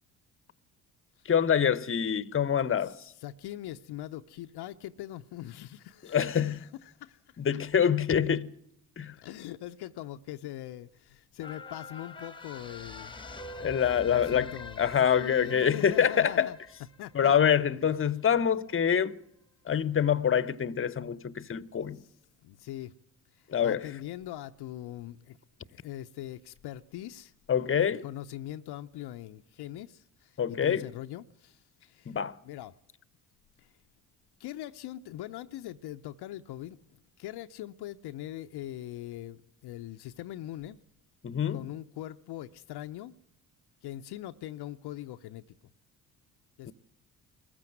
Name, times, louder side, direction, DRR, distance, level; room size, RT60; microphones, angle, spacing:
voice 1, 1.2-3.0 6.1-6.6 7.4-8.5 9.0-9.2 13.6-16.5 17.1-19.2 19.6-22.0 23.5-23.8 27.5-28.0 30.4-30.9 32.1-32.4 41.2-41.6 46.7-46.8, left 8 dB, 30° left, 0.9 m, -26 dB
voice 2, 3.2-7.6 9.2-13.2 14.0-16.6 17.0-17.4 21.9-22.1 22.4-22.9 23.3-25.4 25.7-27.3 28.0-32.2 32.4-32.8 33.6-33.7 34.4-40.8 41.5-43.2 43.8-45.4 46.6-46.7, left 13 dB, 60° left, 0.7 m, -42 dB
sound 1, 11.4-18.1 18.5-18.6, left 3 dB, 10° left, 1.2 m, -45 dB
20.5 x 15.0 x 9.1 m
hypercardioid pair, 50°, 43 cm